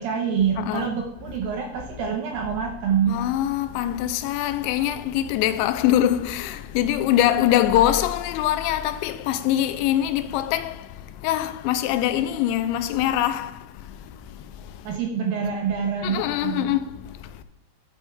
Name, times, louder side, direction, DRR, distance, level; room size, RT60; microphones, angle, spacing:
voice 1, 0.0-3.2 14.8-16.8, right 7 dB, 75° right, 2.2 m, -26 dB
voice 2, 0.6-0.9 3.1-10.9 11.2-13.5 16.0-16.9, left 12 dB, 90° left, 2.9 m, -23 dB
12.5 x 6.9 x 3.6 m
omnidirectional pair, 5.1 m